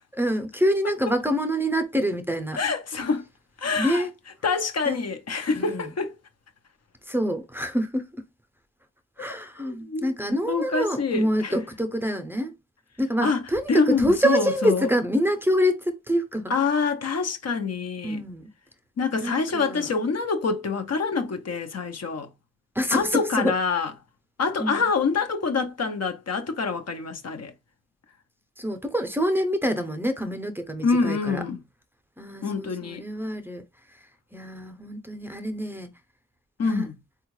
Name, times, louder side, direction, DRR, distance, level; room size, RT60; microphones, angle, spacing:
voice 1, 0.2-2.6 3.8-4.1 4.9-5.0 5.5-5.9 7.1-8.2 9.2-12.5 13.0-16.5 18.0-18.5 19.2-19.9 22.7-23.5 24.6-24.9 28.6-31.4 32.2-33.6 34.3-35.9 36.6-36.9, equal, 5° right, 0.7 m, -26 dB
voice 2, 2.6-3.2 3.6-4.0 4.4-6.1 9.6-10.1 10.5-11.5 13.2-14.9 16.5-18.2 19.0-22.3 22.9-23.9 24.4-27.5 30.8-31.6 32.4-33.0 36.6-36.9, left 4 dB, 55° left, 0.7 m, -26 dB
3.6 x 2.3 x 3.1 m
cardioid pair, 45°, 30 cm